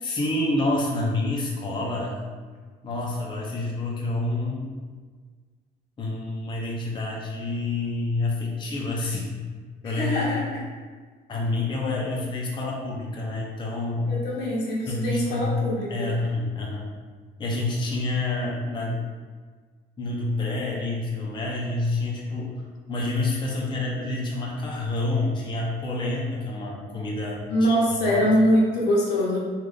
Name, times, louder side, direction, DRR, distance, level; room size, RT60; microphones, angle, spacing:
voice 1, 0.0-2.2 2.8-4.7 6.0-9.3 9.8-10.4 11.3-14.1 14.9-15.5 15.9-16.9 17.4-19.0 20.0-22.5 22.9-27.7 28.0-28.3, left 2 dB, 25° left, -3 dB, 0.7 m, -28 dB
voice 2, 9.8-10.6 14.1-16.1 27.5-29.4, equal, 85° left, -4 dB, 1.1 m, -23 dB
3.8 x 2.5 x 3.3 m, 1.5 s
cardioid pair, 110°, 17 cm